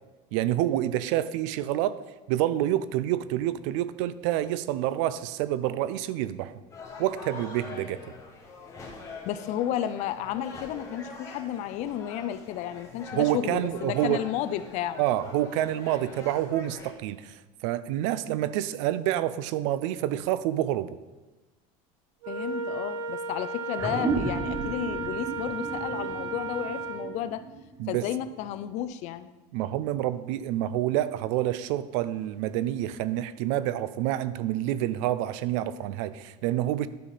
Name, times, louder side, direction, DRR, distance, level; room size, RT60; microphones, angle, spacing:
voice 1, 0.3-2.0 2.3-6.6 7.0-8.0 13.1-14.2 15.0-21.0 27.8-28.1 29.5-36.9, right 13 dB, 70° right, 15 dB, 0.5 m, -28 dB
sound 1, 6.7-16.9, left 4 dB, 20° left, 1.4 m, -44 dB
voice 2, 9.2-15.0 22.3-27.4 27.9-29.3, left 11 dB, 45° left, 13 dB, 0.4 m, -32 dB
Wind instrument woodwind instrument, 22.2-27.1, right 3 dB, 85° right, 1.4 m, -34 dB
sound 2, 23.8-28.7, right 4 dB, 20° right, 0.6 m, -34 dB
11.5 x 5.7 x 4.2 m, 1.1 s
cardioid pair, 160°, 16 cm